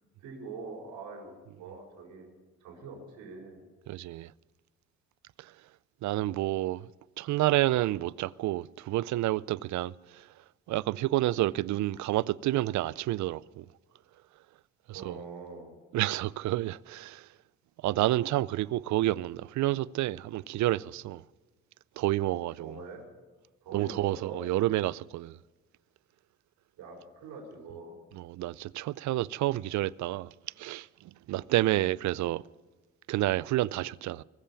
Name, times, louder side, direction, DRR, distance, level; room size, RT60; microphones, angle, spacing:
voice 1, 0.2-2.3 2.6-3.6 14.9-15.7 22.6-23.0 23.6-24.4 26.8-28.0, right 4 dB, 90° right, 4.8 m, -44 dB
voice 2, 3.9-4.3 6.0-6.9 7.2-9.9 10.7-13.6 14.9-15.2 15.9-17.2 17.8-21.2 22.0-22.8 23.7-25.4 28.2-30.3 30.6-30.9 31.3-32.4 33.1-34.2, right 16 dB, 70° right, 0.5 m, -29 dB
22.5 x 7.6 x 7.0 m
cardioid pair, 90°, 30 cm